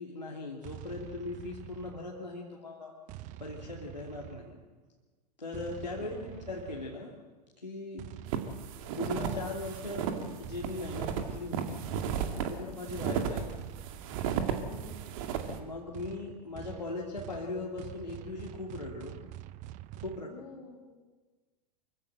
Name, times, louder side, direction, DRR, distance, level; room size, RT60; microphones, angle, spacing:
voice 1, 0.0-2.9 3.4-4.6 5.4-7.1 7.6-8.1 8.9-10.1 10.4-11.9 12.3-13.6 15.5-19.2 20.0-20.3, left 3 dB, 90° left, -3 dB, 2.6 m, -39 dB
sound 1, 0.6-2.4 3.1-4.8 5.5-7.2 8.0-20.2, right 14 dB, 35° right, 0.8 m, -47 dB
voice 2, 6.0-6.5 12.6-12.9 14.5-15.0 20.2-20.8, left 3 dB, 65° left, 3 dB, 4.2 m, -50 dB
sound 2, 8.3-15.6, right 7 dB, 55° right, 2.3 m, -34 dB
24.5 x 15.5 x 7.8 m, 1.3 s
figure-of-eight pair, 95°, 21 cm